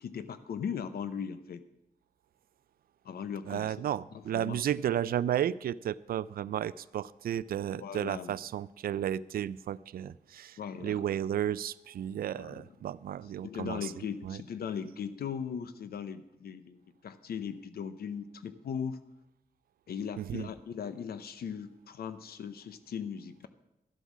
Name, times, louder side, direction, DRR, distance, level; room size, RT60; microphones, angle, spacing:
voice 1, 0.0-1.6 3.0-3.8 4.1-4.6 7.8-8.4 10.6-11.0 12.4-12.6 13.4-19.0 19.9-23.5, left 7 dB, 80° left, 12 dB, 0.8 m, -38 dB
voice 2, 3.5-13.9 14.2-14.4 20.2-20.5, right 10 dB, 75° right, 19 dB, 0.4 m, -33 dB
12.5 x 8.1 x 6.1 m, 0.90 s
cardioid pair, 80°, 16 cm